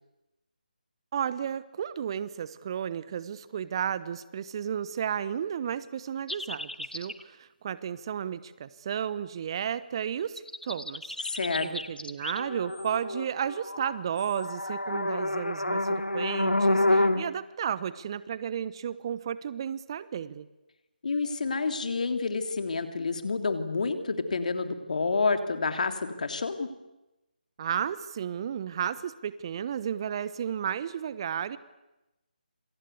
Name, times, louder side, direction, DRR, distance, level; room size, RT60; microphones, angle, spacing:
voice 1, 1.1-11.2 11.6-20.5 27.6-31.6, right 8 dB, 30° right, 16 dB, 1.0 m, -33 dB
sound 1, 6.3-7.2 10.4-17.3, left 1 dB, 85° left, 2.3 m, -29 dB
voice 2, 11.3-11.7 21.0-26.7, left 4 dB, 55° left, 8 dB, 3.2 m, -29 dB
27.0 x 26.5 x 8.2 m, 0.99 s
figure-of-eight pair, 150°, 5 cm